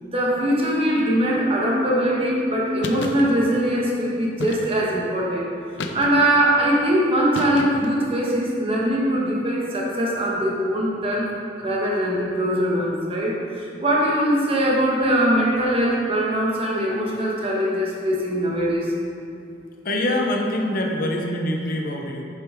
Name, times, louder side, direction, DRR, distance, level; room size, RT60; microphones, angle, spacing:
voice 1, 0.0-5.5 5.9-11.3 11.6-18.9, right 1 dB, 35° right, -4 dB, 1.4 m, -22 dB
sound 1, 2.8-3.3 4.4-5.0 5.8-6.4 7.3-8.0, left 2 dB, 90° left, 0.6 m, -32 dB
voice 2, 19.8-22.2, left 1 dB, 50° left, 1 dB, 0.9 m, -24 dB
9.2 x 6.4 x 3.7 m, 2.5 s
head